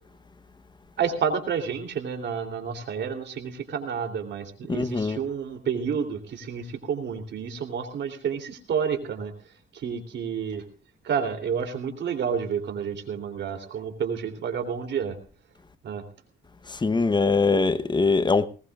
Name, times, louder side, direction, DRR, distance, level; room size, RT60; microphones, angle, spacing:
voice 1, 1.0-9.3 9.7-10.6 11.0-15.1 15.8-16.0, right 7 dB, 65° right, 3.3 m, -30 dB
voice 2, 4.7-5.2 16.7-18.5, left 4 dB, 20° left, 1.0 m, -22 dB
20.0 x 19.0 x 2.5 m
cardioid pair, 90°, 20 cm